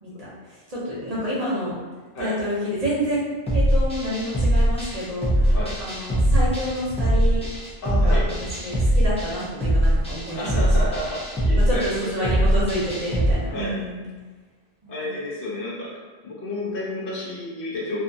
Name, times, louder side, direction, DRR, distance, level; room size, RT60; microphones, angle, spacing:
voice 1, 0.0-1.7 2.2-3.2 3.5-7.4 8.0-8.3 8.6-10.7 11.7-14.0 14.8-15.1, equal, 45° right, -8 dB, 0.8 m, -28 dB
sound 1, 3.5-13.3, equal, 10° left, 0.4 m, -21 dB
voice 2, 7.8-8.3 10.3-12.3 13.5-13.8 14.9-15.9 16.2-18.0, left 1 dB, 65° left, -5 dB, 0.8 m, -31 dB
2.5 x 2.3 x 2.6 m, 1.4 s
omnidirectional pair, 1.0 m